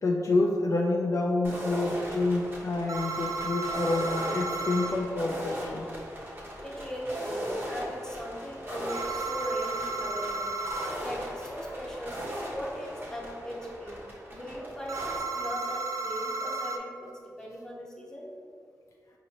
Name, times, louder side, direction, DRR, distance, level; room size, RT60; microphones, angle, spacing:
voice 1, 0.0-5.9, left 2 dB, 50° left, -1 dB, 0.4 m, -28 dB
sound 1, 1.4-15.2, equal, 30° right, 0.9 m, -38 dB
sound 2, 2.9-5.0 8.9-11.0 14.9-16.8, right 3 dB, 55° right, 0.4 m, -33 dB
voice 2, 6.6-10.6 11.0-12.2 12.5-14.0 14.3-15.0 15.3-18.3, equal, 10° left, -3 dB, 0.7 m, -38 dB
5.0 x 2.8 x 2.8 m, 2.3 s
wide cardioid pair, 105°, 7 cm